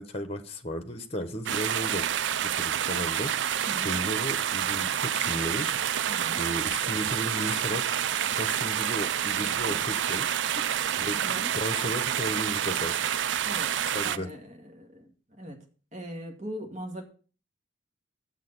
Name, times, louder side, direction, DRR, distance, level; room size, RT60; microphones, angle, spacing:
voice 1, 0.0-3.6 3.8-5.8 6.4-10.4 11.0-13.0 13.9-14.3, equal, 30° left, 8 dB, 1.1 m, -35 dB
sound 1, 1.5-14.2, right 9 dB, 70° right, 0.4 m, -28 dB
voice 2, 6.1-6.4 9.6-9.9 10.6-10.9 11.2-11.5 13.4-13.7 14.0-15.6 15.9-17.0, equal, 35° right, 2 dB, 2.1 m, -40 dB
7.5 x 6.7 x 8.0 m, 0.38 s
head